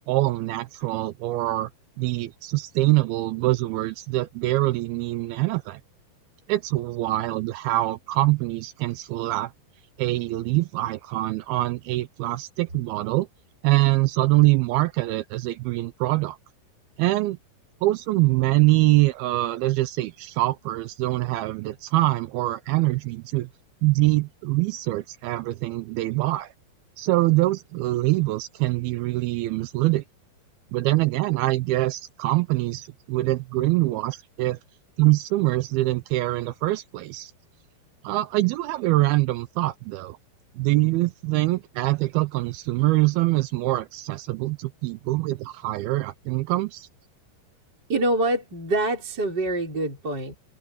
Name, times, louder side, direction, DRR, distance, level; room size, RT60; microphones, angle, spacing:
voice 1, 0.1-1.7 2.0-5.8 6.5-9.5 10.0-13.3 13.6-16.4 17.0-17.4 17.8-23.5 23.8-26.5 27.0-30.0 30.7-34.6 35.0-37.3 38.0-40.2 40.6-46.9, right 19 dB, 80° right, 2.2 m, -24 dB
voice 2, 47.9-50.4, right 2 dB, 25° right, 5.5 m, -25 dB
omnidirectional pair, 5.0 m